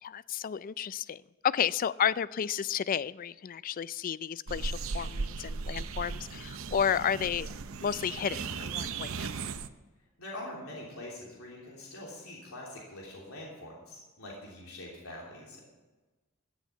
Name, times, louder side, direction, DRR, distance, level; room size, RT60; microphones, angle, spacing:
voice 1, 0.0-7.5 7.8-9.3, left 8 dB, 40° left, 18 dB, 0.3 m, -32 dB
sound 1, 4.5-9.7, right 4 dB, 65° right, 0.7 m, -37 dB
voice 2, 10.2-15.6, left 1 dB, 85° left, -4 dB, 3.3 m, -44 dB
15.0 x 7.2 x 8.4 m, 1.2 s
head